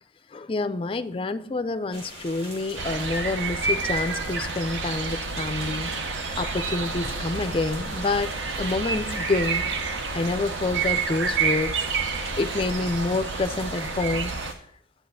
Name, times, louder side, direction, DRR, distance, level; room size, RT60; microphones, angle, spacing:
voice 1, 0.3-5.9 6.4-9.6 10.1-11.8 12.4-14.3, left 3 dB, 25° left, 0.4 m, -28 dB
sound 1, 1.9-14.5, equal, 30° right, 2.1 m, -42 dB
sound 2, 2.8-14.5, right 4 dB, 70° right, 0.7 m, -29 dB
10.5 x 8.4 x 2.6 m
head